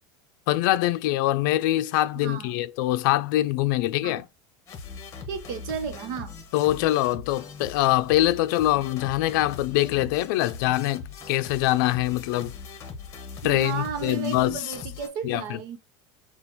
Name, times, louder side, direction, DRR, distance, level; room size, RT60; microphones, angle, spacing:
voice 1, 0.5-4.2 6.5-12.5 13.4-14.7 15.2-15.8, left 15 dB, 70° left, 0.5 m, -24 dB
voice 2, 2.1-2.6 4.0-4.2 5.3-6.4 13.4-15.8, right 7 dB, 70° right, 0.9 m, -34 dB
sound 1, 4.7-15.1, left 5 dB, 30° left, 1.2 m, -41 dB
6.9 x 2.4 x 2.9 m
supercardioid pair, 160°, 11 cm